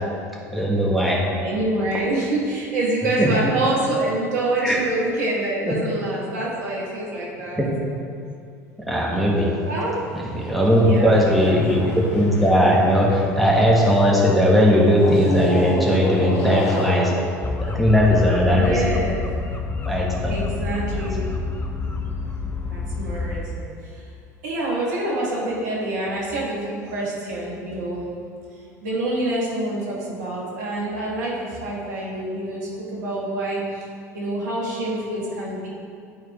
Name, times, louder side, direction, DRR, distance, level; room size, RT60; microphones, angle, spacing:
voice 1, 0.5-1.3 3.2-3.3 4.6-4.8 5.7-5.8 7.6-7.7 8.9-9.6 10.3-17.1 17.6-19.0 19.9-20.4 20.9-21.1, equal, ahead, -4 dB, 1.9 m, -18 dB
voice 2, 1.3-7.6 9.7-10.0 10.7-11.9 18.5-19.2 20.2-21.4 22.7-24.1 24.4-28.1 28.5-33.9 34.1-35.7, right 2 dB, 75° right, -4 dB, 1.9 m, -26 dB
sound 1, 9.5-14.1 14.9-18.5, left 2 dB, 65° left, 1.4 m, -32 dB
sound 2, 17.4-23.4, left 4 dB, 20° left, 0.9 m, -28 dB
11.5 x 4.4 x 3.6 m, 2.4 s
hypercardioid pair, 70°, 9 cm